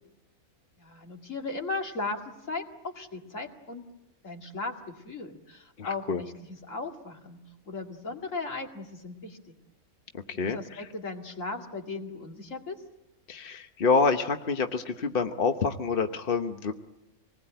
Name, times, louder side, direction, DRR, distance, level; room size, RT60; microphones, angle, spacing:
voice 1, 0.8-3.9 4.2-7.4 7.6-9.5 10.4-12.8, left 3 dB, 60° left, 2 dB, 2.6 m, -37 dB
voice 2, 5.8-6.2 10.3-10.9 13.3-16.7, left 4 dB, 40° left, 6 dB, 1.1 m, -27 dB
26.0 x 20.0 x 8.9 m, 0.98 s
omnidirectional pair, 1.5 m